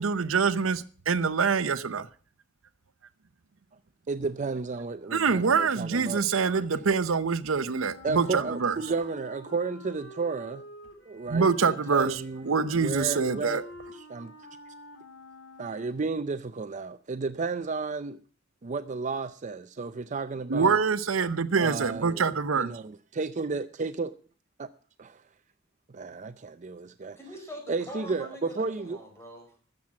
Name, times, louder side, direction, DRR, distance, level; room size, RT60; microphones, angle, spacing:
voice 1, 0.0-2.1 5.1-8.8 11.3-13.6 20.5-22.7, right 5 dB, 85° right, 0.7 m, -25 dB
voice 2, 4.1-6.2 6.7-6.8 8.0-10.6 11.1-13.6 13.9-14.3 14.7-14.8 15.6-18.2 18.6-20.8 21.6-24.1 24.6-24.7 25.0-25.2 25.9-27.2 27.7-29.0, right 4 dB, 40° right, 0.5 m, -33 dB
Wind instrument woodwind instrument, 7.9-16.2, left 2 dB, 85° left, 4.4 m, -48 dB
voice 3, 27.2-29.5, equal, 15° left, 4.9 m, -43 dB
14.0 x 7.4 x 7.2 m
head